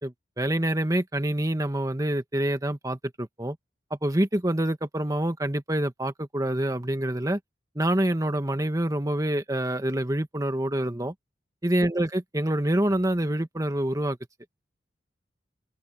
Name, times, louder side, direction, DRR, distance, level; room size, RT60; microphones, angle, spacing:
voice 1, 0.0-3.6 3.9-7.4 7.7-11.1 11.6-14.2, right 1 dB, 20° right, 1.5 m, -26 dB
open air
head